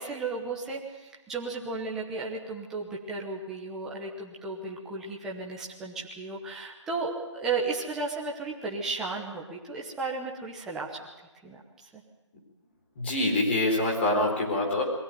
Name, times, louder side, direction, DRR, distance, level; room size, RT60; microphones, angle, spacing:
voice 1, 0.0-11.1 11.4-11.6 11.9-12.0, right 3 dB, 5° right, -3 dB, 1.1 m, -34 dB
voice 2, 13.0-14.8, left 2 dB, 25° left, 0 dB, 4.3 m, -25 dB
22.5 x 16.5 x 9.3 m, 1.1 s
hypercardioid pair, 175°, 16 cm